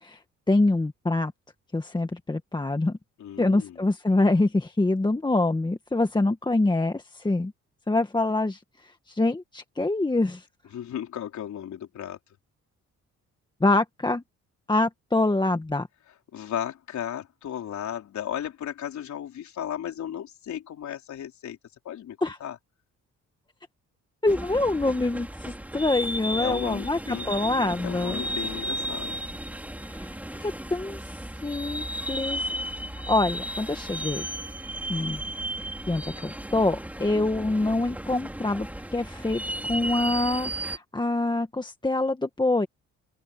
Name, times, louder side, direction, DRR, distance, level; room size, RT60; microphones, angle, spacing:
voice 1, 0.5-1.3 1.7-3.0 3.4-7.5 7.9-10.4 13.6-14.2 14.7-15.9 22.2-22.4 24.2-28.2 29.8-31.0 31.4-32.4 33.1-34.2 34.9-35.2 35.9-38.7 38.9-39.4 39.7-42.7, left 2 dB, 15° left, 1.6 m, -25 dB
voice 2, 3.2-3.8 10.7-12.2 16.3-21.6 21.8-22.6 26.4-29.2 37.1-37.8, left 10 dB, 70° left, 4.3 m, -35 dB
sound 1, 24.3-40.8, right 1 dB, 5° right, 3.5 m, -34 dB
open air
cardioid pair, 90°, 30 cm